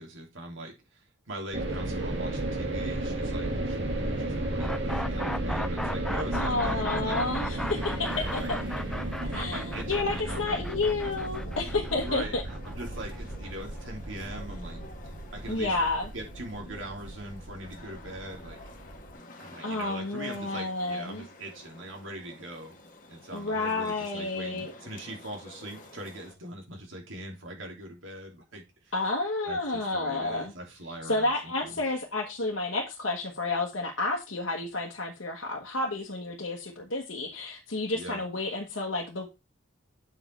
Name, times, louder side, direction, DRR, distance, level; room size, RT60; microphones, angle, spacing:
voice 1, 0.0-7.2 8.1-8.5 9.2-10.6 11.9-15.8 16.1-18.6 19.4-22.8 23.1-28.9 29.5-31.8 37.9-38.2, right 1 dB, 85° right, 2.9 m, -41 dB
sound 1, 1.5-19.1, right 1 dB, 60° right, 2.3 m, -34 dB
sound 2, 4.6-14.4, left 1 dB, 5° left, 0.3 m, -37 dB
voice 2, 6.3-8.6 9.0-12.4 15.5-16.1 19.6-21.2 23.3-24.7 28.9-30.5 31.1-39.3, left 2 dB, 85° left, 1.3 m, -30 dB
sound 3, 7.7-26.3, left 2 dB, 40° left, 1.5 m, -50 dB
8.0 x 5.2 x 4.3 m
head